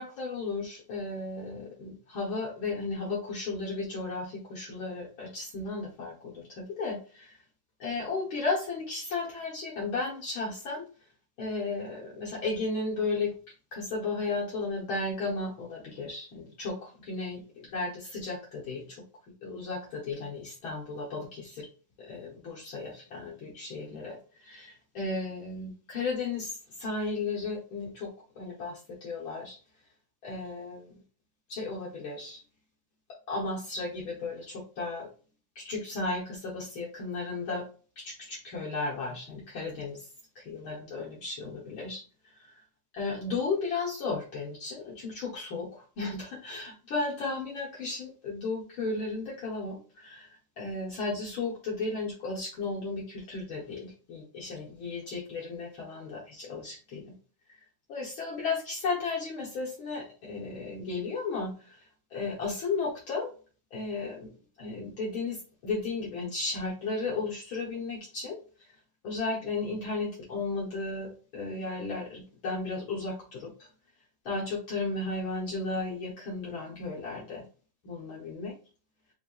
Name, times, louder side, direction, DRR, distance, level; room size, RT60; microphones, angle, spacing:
voice 1, 0.0-7.4 7.8-10.8 11.4-13.3 13.7-19.0 19.4-21.7 22.0-29.6 30.2-30.9 31.5-32.4 33.3-35.1 35.5-37.7 38.0-40.1 40.3-42.0 42.9-50.3 50.6-57.1 57.9-61.8 62.1-63.3 63.7-64.3 64.6-68.4 69.0-73.7 74.2-77.4 77.8-78.5, left 3 dB, 55° left, -4 dB, 1.5 m, -34 dB
4.7 x 3.4 x 2.4 m, 0.38 s
omnidirectional pair, 3.6 m